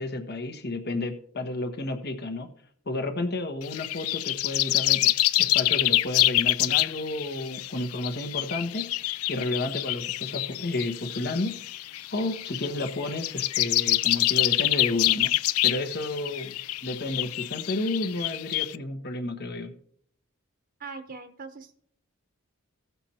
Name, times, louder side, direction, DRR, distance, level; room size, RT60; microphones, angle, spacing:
voice 1, 0.0-2.5 2.9-11.6 12.1-15.4 15.6-16.6 16.8-19.7, left 2 dB, 50° left, 6 dB, 1.1 m, -31 dB
sound 1, 3.6-18.8, left 17 dB, 85° left, 0.4 m, -26 dB
voice 2, 20.8-21.7, right 4 dB, 45° right, 6 dB, 0.9 m, -41 dB
17.0 x 6.9 x 2.9 m, 0.63 s
head